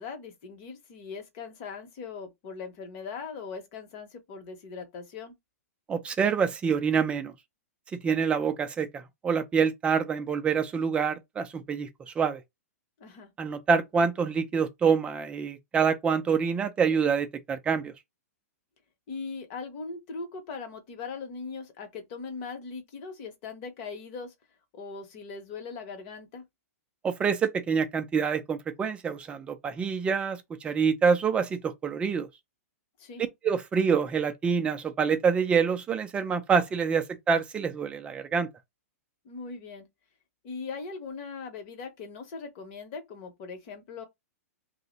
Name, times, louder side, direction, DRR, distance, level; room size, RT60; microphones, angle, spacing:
voice 1, 0.0-5.3 13.0-13.3 19.1-24.3 24.7-26.4 33.0-33.2 39.2-39.9 40.4-44.0, left 4 dB, 40° left, 0.8 m, -40 dB
voice 2, 5.9-7.3 7.9-12.4 13.4-17.9 27.0-32.3 33.4-38.5, right 6 dB, 15° right, 0.4 m, -26 dB
2.6 x 2.0 x 3.9 m
hypercardioid pair, 145°, 8 cm